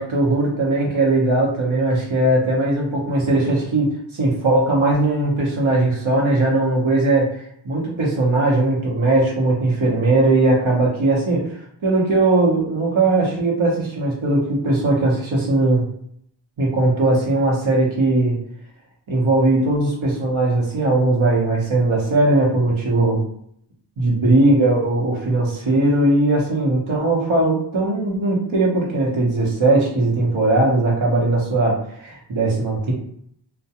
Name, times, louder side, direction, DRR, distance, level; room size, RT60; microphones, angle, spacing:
voice 1, 0.0-11.4 11.8-15.8 16.6-18.4 19.1-23.2 24.0-32.9, right 2 dB, 85° right, -3 dB, 0.9 m, -19 dB
2.3 x 2.1 x 2.8 m, 0.69 s
wide cardioid pair, 55°, 46 cm